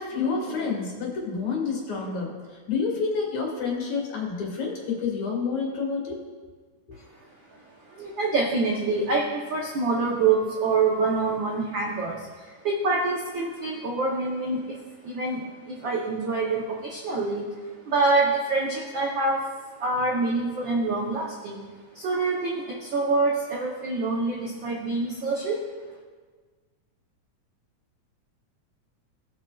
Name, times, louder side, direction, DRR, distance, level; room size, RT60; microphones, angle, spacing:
voice 1, 0.0-6.2, left 5 dB, 70° left, -2 dB, 3.1 m, -29 dB
voice 2, 7.5-14.8 15.0-17.4 17.8-19.4 19.8-21.6 21.9-25.6, right 3 dB, 80° right, -3 dB, 1.0 m, -26 dB
17.5 x 6.1 x 2.3 m, 1.4 s
omnidirectional pair, 3.4 m